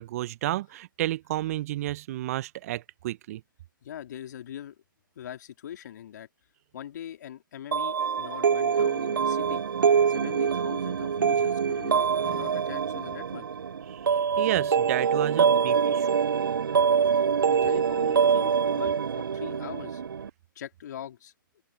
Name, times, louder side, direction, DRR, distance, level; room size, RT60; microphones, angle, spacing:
voice 1, 0.0-3.4 12.2-12.5 13.9-16.2, right 15 dB, 45° right, 0.7 m, -32 dB
voice 2, 3.8-4.7 5.1-6.3 6.7-9.6 10.1-13.5 17.5-20.0 20.5-21.3, left 10 dB, 55° left, 3.3 m, -42 dB
sound 1, 7.7-20.3, right 7 dB, 75° right, 0.5 m, -25 dB
open air
figure-of-eight pair, 130°, 11 cm